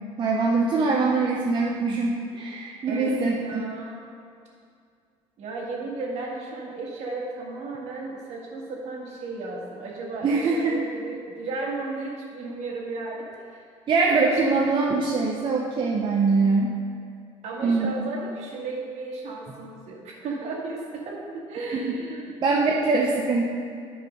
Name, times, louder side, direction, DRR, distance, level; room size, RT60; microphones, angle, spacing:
voice 1, 0.2-3.6 10.2-10.8 13.9-16.8 17.6-17.9 21.7-21.9 22.4-23.5, right 3 dB, 40° right, -2 dB, 0.8 m, -23 dB
voice 2, 2.9-4.0 5.4-13.6 14.2-14.5 17.4-22.3 22.7-22.9, right 3 dB, 60° right, -2 dB, 1.9 m, -34 dB
9.3 x 4.9 x 5.2 m, 2.3 s
cardioid pair, 115°, 12 cm